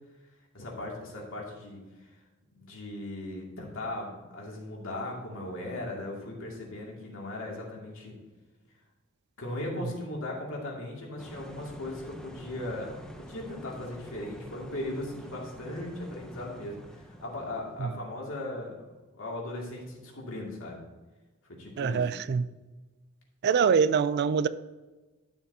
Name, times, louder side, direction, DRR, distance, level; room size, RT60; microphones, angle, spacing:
voice 1, 0.5-1.8 2.5-8.1 9.4-18.9 19.1-20.8 21.5-22.0, left 1 dB, 65° left, 2.3 m, -38 dB
sound 1, 11.2-17.8, equal, 5° left, 0.8 m, -46 dB
voice 2, 21.8-22.4 23.4-24.5, right 6 dB, 50° right, 0.3 m, -24 dB
11.5 x 7.3 x 2.8 m
head